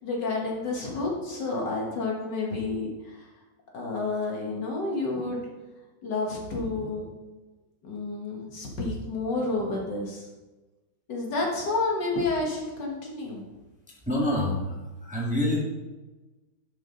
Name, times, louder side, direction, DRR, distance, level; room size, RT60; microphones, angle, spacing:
voice 1, 0.0-3.3 3.7-5.5 6.0-7.1 7.8-10.3 11.1-13.4, left 3 dB, 60° left, -1 dB, 2.0 m, -30 dB
voice 2, 13.9-15.6, left 1 dB, 5° right, -4 dB, 1.5 m, -27 dB
11.5 x 5.7 x 3.8 m, 1.2 s
omnidirectional pair, 2.3 m